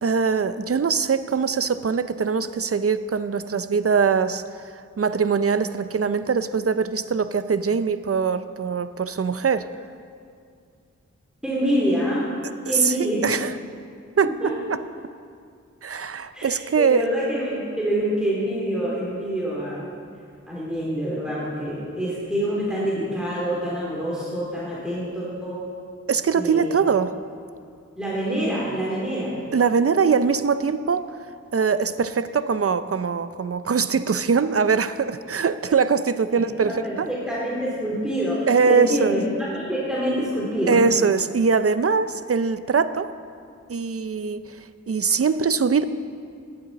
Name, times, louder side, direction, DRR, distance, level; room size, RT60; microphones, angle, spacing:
voice 1, 0.0-9.7 12.7-13.5 14.2-14.8 15.8-17.1 26.1-27.1 29.5-37.1 38.5-39.1 40.7-43.1 43.7-45.8, right 5 dB, 50° right, 13 dB, 0.6 m, -22 dB
voice 2, 11.4-12.2 12.6-13.2 14.4-14.5 16.3-19.9 20.5-25.6 26.3-26.7 28.0-29.3 36.3-39.2 39.5-40.8, equal, 5° right, -7 dB, 3.1 m, -26 dB
17.5 x 10.5 x 4.1 m, 2.3 s
wide cardioid pair, 60°, 29 cm